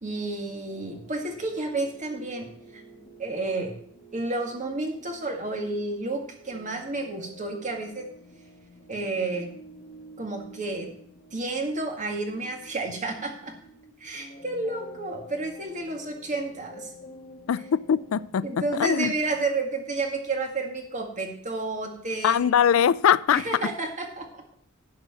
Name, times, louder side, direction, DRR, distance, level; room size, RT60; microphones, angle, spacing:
voice 1, 0.0-2.8 3.2-3.8 4.1-8.1 8.9-9.5 10.2-10.9 11.3-13.5 14.0-16.9 18.4-22.4 23.3-24.4, right 2 dB, 35° right, 2 dB, 1.9 m, -31 dB
sound 1, 0.7-19.5, equal, 45° left, 1.8 m, -49 dB
voice 2, 17.5-18.5 18.7-19.1 22.2-23.5, left 8 dB, 75° left, 18 dB, 0.4 m, -22 dB
11.5 x 4.9 x 7.5 m, 0.63 s
head